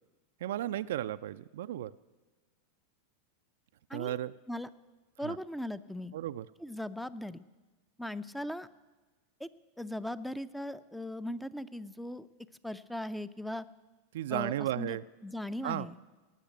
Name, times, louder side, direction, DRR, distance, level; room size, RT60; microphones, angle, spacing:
voice 1, 0.4-1.9 3.9-4.3 5.2-5.4 6.1-6.4 14.1-15.0 15.6-15.9, right 12 dB, 65° right, 13 dB, 0.4 m, -34 dB
voice 2, 5.2-6.1 6.6-7.4 8.0-8.7 9.4-9.5 9.8-12.3 12.6-13.7 14.3-16.0, left 1 dB, 5° left, 15 dB, 0.5 m, -38 dB
18.0 x 6.4 x 9.1 m, 1.2 s
figure-of-eight pair, 90°, 0 cm